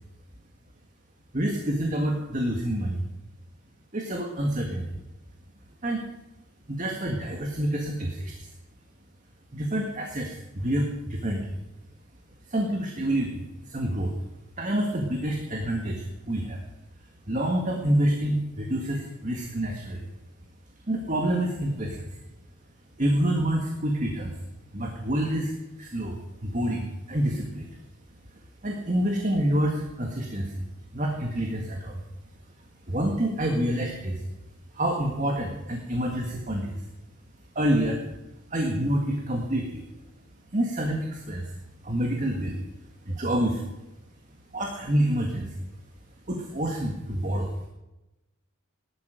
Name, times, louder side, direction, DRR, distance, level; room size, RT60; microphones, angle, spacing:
voice 1, 1.3-3.0 3.9-5.0 5.8-6.0 6.7-8.5 9.5-11.5 12.5-14.1 14.6-16.6 17.3-20.1 20.9-22.1 23.0-24.3 24.7-25.5 25.8-27.7 28.6-30.6 30.9-32.0 32.9-34.2 34.7-36.8 37.6-38.0 38.5-39.8 40.5-41.5 41.8-42.6 43.1-43.7 44.5-45.6 46.3-47.7, right 1 dB, 35° right, 1 dB, 1.7 m, -27 dB
18.5 x 12.0 x 5.2 m, 0.98 s
head